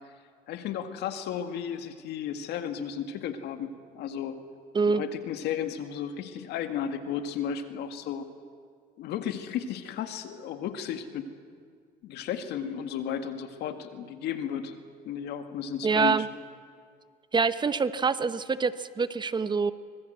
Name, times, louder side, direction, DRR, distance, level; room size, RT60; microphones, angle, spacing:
voice 1, 0.5-4.4 4.8-8.3 9.0-11.3 12.0-14.8 15.1-16.3, left 8 dB, 80° left, 8 dB, 2.0 m, -34 dB
voice 2, 15.8-16.3 17.3-19.7, right 5 dB, 25° right, 13 dB, 1.0 m, -25 dB
25.0 x 21.0 x 7.9 m, 2.1 s
cardioid pair, 110°, 17 cm